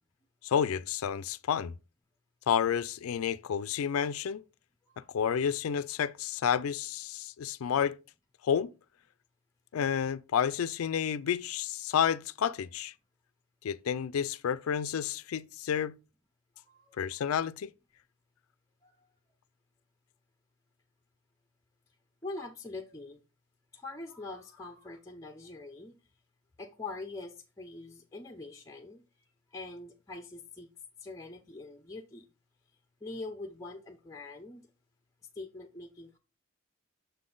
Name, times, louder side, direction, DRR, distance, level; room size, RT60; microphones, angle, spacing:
voice 1, 0.4-1.7 2.5-4.4 5.1-8.0 8.4-8.7 9.7-12.9 13.6-16.0 17.0-17.7, left 8 dB, 90° left, 0.4 m, -30 dB
voice 2, 16.6-17.0 18.8-18.9 22.2-23.2 23.7-26.0 26.6-29.0 29.5-30.7 31.0-32.3 33.0-34.7 35.4-36.2, left 2 dB, 15° left, 0.5 m, -43 dB
6.7 x 3.8 x 3.8 m
head